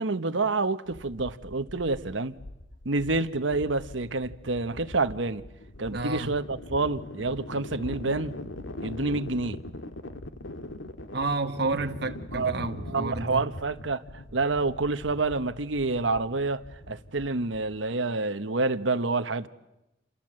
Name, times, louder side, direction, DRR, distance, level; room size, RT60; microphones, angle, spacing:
voice 1, 0.0-2.3 2.8-5.4 5.8-8.3 8.8-9.6 12.3-14.0 14.3-19.5, right 3 dB, 75° right, 1.2 m, -28 dB
sound 1, 0.9-17.9, left 1 dB, 80° left, 1.7 m, -42 dB
voice 2, 5.9-6.3 11.1-13.4, right 3 dB, 60° right, 1.4 m, -30 dB
28.5 x 27.0 x 7.7 m
head